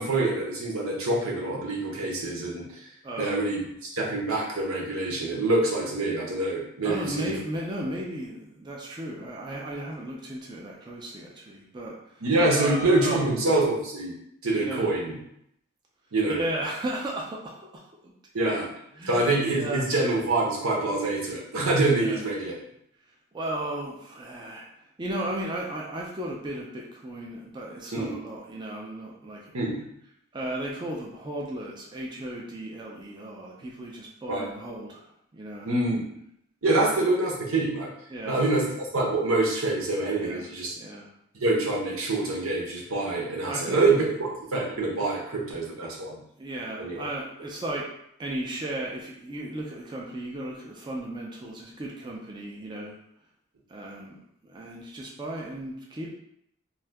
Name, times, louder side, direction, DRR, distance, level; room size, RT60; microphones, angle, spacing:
voice 1, 0.0-2.6 3.2-7.3 12.2-14.1 14.4-15.2 16.1-16.4 18.3-18.7 19.1-22.5 27.9-28.1 29.5-29.8 34.3-34.4 35.6-36.1 36.6-37.9 38.3-40.7 41.4-46.2 46.8-47.1 47.4-47.5, right 2 dB, 90° right, -2 dB, 0.8 m, -25 dB
voice 2, 3.0-3.4 6.8-12.0 12.5-13.3 14.6-14.9 16.4-17.8 18.4-18.5 19.0-19.8 22.0-22.2 23.3-24.7 25.0-29.5 30.3-35.0 35.3-35.7 38.1-38.4 40.1-40.5 40.8-41.1 43.5-43.9 45.6-46.1 46.4-47.9 48.2-52.9 53.7-54.2 54.4-56.1, right 1 dB, 20° right, -3 dB, 0.4 m, -35 dB
2.6 x 2.3 x 3.3 m, 0.74 s
head